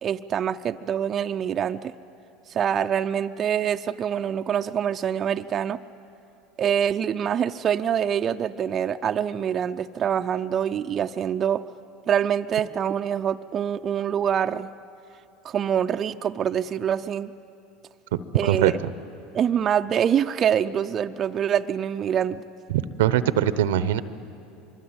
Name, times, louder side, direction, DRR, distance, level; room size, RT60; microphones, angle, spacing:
voice 1, 0.0-1.9 2.5-5.8 6.6-11.6 12.1-14.7 15.4-17.3 18.3-18.8 19.3-22.4, right 8 dB, 40° right, 7 dB, 0.6 m, -25 dB
voice 2, 18.1-18.7 22.7-24.0, right 11 dB, 80° right, 15 dB, 0.9 m, -22 dB
24.5 x 23.0 x 8.9 m, 2.7 s
hypercardioid pair, 90°, 0 cm